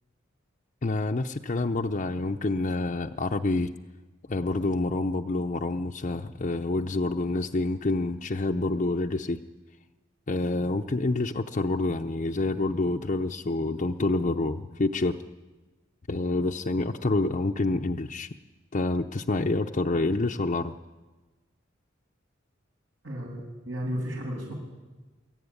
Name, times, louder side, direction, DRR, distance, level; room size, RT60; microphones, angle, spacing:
voice 1, 0.8-3.7 4.3-9.4 10.3-15.2 16.1-18.3 18.7-20.8, left 2 dB, 40° left, 2 dB, 0.6 m, -27 dB
voice 2, 23.0-24.5, equal, 85° right, -6 dB, 7.2 m, -33 dB
24.5 x 14.0 x 9.7 m, 1.2 s
head